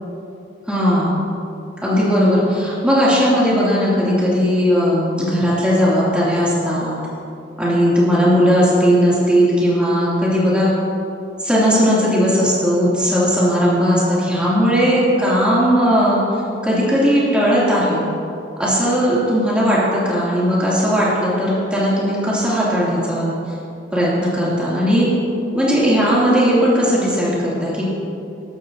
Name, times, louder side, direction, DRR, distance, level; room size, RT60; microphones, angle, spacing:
voice 1, 0.7-1.2 1.8-6.9 7.6-10.7 11.4-16.2 16.6-18.0 18.6-23.3 23.9-25.1 25.5-27.9, equal, 5° right, -8 dB, 2.9 m, -17 dB
13.0 x 12.0 x 2.9 m, 2.6 s
head